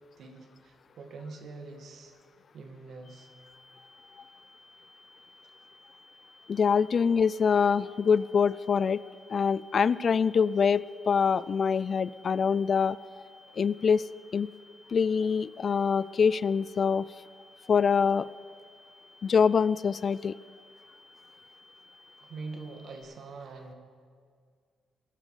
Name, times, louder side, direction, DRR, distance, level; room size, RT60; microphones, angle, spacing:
voice 1, 0.2-2.1 2.5-3.3 22.2-23.7, right 3 dB, 65° right, 4 dB, 2.1 m, -44 dB
sound 1, 3.0-23.0, left 1 dB, 80° left, 3.8 m, -57 dB
voice 2, 6.5-9.0 9.3-13.0 13.6-14.0 14.3-14.5 14.9-17.1 17.7-18.3 19.2-20.4, left 6 dB, 50° left, 18 dB, 0.4 m, -24 dB
20.0 x 11.0 x 5.0 m, 2.1 s
supercardioid pair, 65°, 0 cm